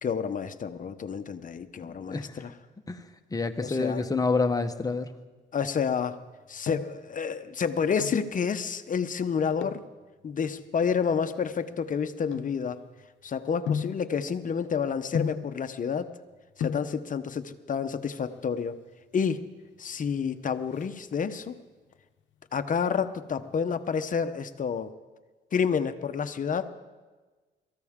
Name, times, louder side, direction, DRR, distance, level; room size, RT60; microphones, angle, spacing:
voice 1, 0.0-2.5 3.6-4.0 5.5-6.2 6.5-9.8 10.2-12.8 13.2-16.1 16.6-18.8 19.1-19.5 19.8-21.5 22.5-24.9 25.5-26.7, left 6 dB, 40° left, 11 dB, 0.9 m, -29 dB
voice 2, 1.8-2.4 2.9-3.0 3.3-5.1, left 4 dB, 20° left, 7 dB, 1.1 m, -28 dB
sound 1, 6.2-7.1 7.8-8.3 9.5-9.9 10.6-13.0 13.7-14.1 15.1-15.6 16.3-16.4 16.6-17.0 18.1-18.6 18.9-19.0 19.2-19.4 19.7-20.1 20.4-21.5 21.9-22.3 22.7-23.9 24.1-24.2, left 7 dB, 65° left, 0.9 m, -35 dB
23.0 x 14.5 x 3.7 m, 1.3 s
cardioid pair, 90°, 20 cm